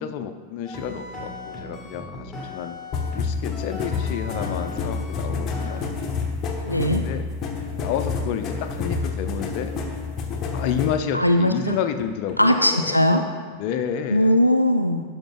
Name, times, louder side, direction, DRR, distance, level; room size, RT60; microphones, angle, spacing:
voice 1, 0.0-2.8 3.1-5.8 7.0-7.2 7.8-9.7 10.5-13.1 13.5-14.4, left 8 dB, 45° left, 7 dB, 0.6 m, -30 dB
sound 1, 0.6-3.2 3.5-6.3 6.7-6.8 7.1-7.2 7.6-8.1 8.5-8.6 8.9-9.0 9.4-10.0 10.5-10.6 11.1-11.2 11.7-12.4, left 2 dB, 5° left, 2.0 m, -38 dB
sound 2, 2.9-11.0, left 4 dB, 30° left, 1.0 m, -28 dB
voice 2, 6.6-7.0 11.1-11.8 12.4-13.2 14.1-15.0, left 1 dB, 85° left, 5 dB, 0.4 m, -19 dB
11.5 x 5.4 x 3.9 m, 1.5 s
figure-of-eight pair, 90°, 0 cm